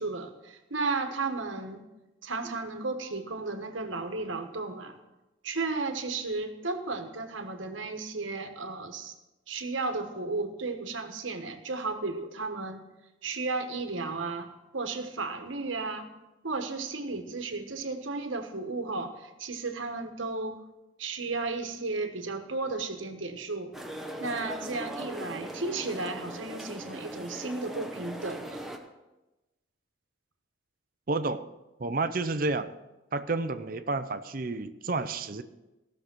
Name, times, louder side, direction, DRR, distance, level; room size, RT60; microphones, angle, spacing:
voice 1, 0.0-1.8 2.2-5.0 5.4-9.1 9.5-12.8 13.2-16.1 16.4-20.6 21.0-23.7 24.2-28.6, right 3 dB, 80° right, 6 dB, 1.3 m, -34 dB
sound 1, 23.7-28.8, right 1 dB, ahead, 1.0 m, -39 dB
voice 2, 31.1-31.5 31.8-32.7 33.1-35.4, right 3 dB, 45° right, 10 dB, 0.6 m, -30 dB
16.0 x 6.6 x 6.1 m, 1.0 s
head